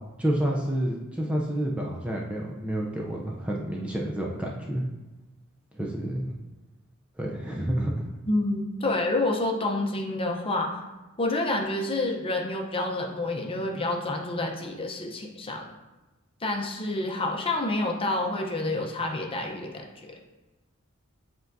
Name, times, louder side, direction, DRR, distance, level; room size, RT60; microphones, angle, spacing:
voice 1, 0.2-4.8 5.7-6.3 7.2-8.1, right 1 dB, 5° right, -2 dB, 0.5 m, -29 dB
voice 2, 8.3-10.8 11.2-15.7 16.4-20.1, left 2 dB, 25° left, 1 dB, 0.7 m, -28 dB
7.9 x 4.6 x 2.7 m, 1.1 s
head